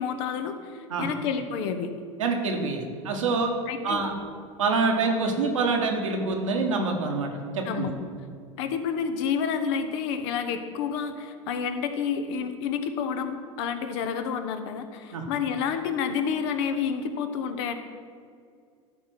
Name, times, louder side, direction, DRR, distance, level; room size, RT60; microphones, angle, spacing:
voice 1, 0.0-1.9 3.7-4.0 7.6-7.9 8.6-17.7, left 7 dB, 60° left, 8 dB, 0.9 m, -29 dB
voice 2, 2.2-3.5 3.8-4.1 4.6-7.9 15.1-15.3, right 3 dB, 75° right, 2 dB, 1.5 m, -26 dB
12.5 x 4.4 x 6.1 m, 2.2 s
figure-of-eight pair, 80°, 16 cm